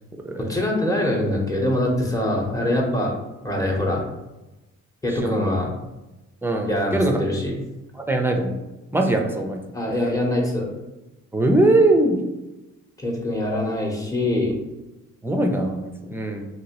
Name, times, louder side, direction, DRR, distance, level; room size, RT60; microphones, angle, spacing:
voice 1, 0.4-3.2 3.4-4.1 5.0-5.7 6.7-7.5 9.7-10.7 13.0-14.6, left 1 dB, 10° left, -2 dB, 0.9 m, -23 dB
voice 2, 5.1-5.5 6.4-7.2 8.0-8.5 8.9-9.6 11.3-12.2 15.2-16.5, right 2 dB, 5° right, 2 dB, 0.5 m, -21 dB
3.0 x 2.9 x 2.9 m, 1.0 s
cardioid pair, 90°, 30 cm